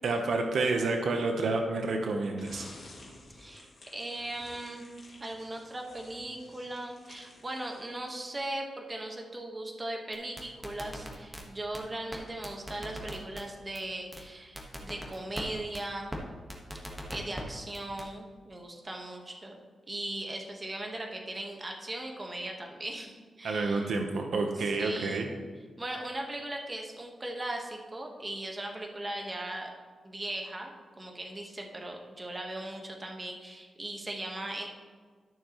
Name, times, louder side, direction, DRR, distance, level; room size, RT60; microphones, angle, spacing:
voice 1, 0.0-2.7 23.4-25.3, right 3 dB, 75° right, 3 dB, 0.9 m, -29 dB
sound 1, 2.4-8.3, left 2 dB, 50° left, 2.1 m, -53 dB
voice 2, 3.4-4.8 5.2-16.1 17.1-19.6 19.9-23.9 24.6-25.3 25.8-29.7 30.0-34.7, right 1 dB, 25° right, 1 dB, 1.3 m, -38 dB
sound 2, 10.1-11.4 11.7-11.8 12.1-12.2 12.4-13.4 13.7-13.8 14.1-14.2 14.6-15.4 15.7-15.8 16.1-16.2 16.5-17.4 17.7-18.1, equal, 5° right, 1.4 m, -39 dB
12.0 x 6.7 x 3.0 m, 1.5 s
cardioid pair, 85°, 0 cm